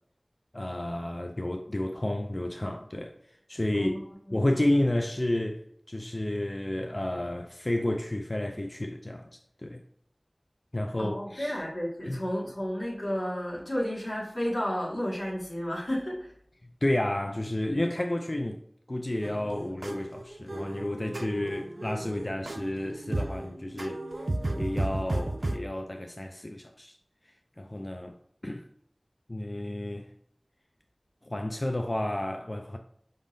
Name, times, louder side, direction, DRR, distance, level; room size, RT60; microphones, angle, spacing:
voice 1, 0.5-3.2 3.5-4.0 4.3-5.6 5.9-9.3 9.6-9.8 10.7-11.6 12.0-12.2 16.8-18.6 18.9-24.3 24.6-27.0 27.6-28.2 28.4-28.6 29.3-30.1 31.2-32.8, left 1 dB, 40° left, 0.3 m, -31 dB
voice 2, 11.0-16.3, equal, 85° left, 1.7 m, -32 dB
sound 1, 19.2-25.6, right 1 dB, 80° right, 0.4 m, -34 dB
5.1 x 3.6 x 2.6 m
wide cardioid pair, 40°, 0 cm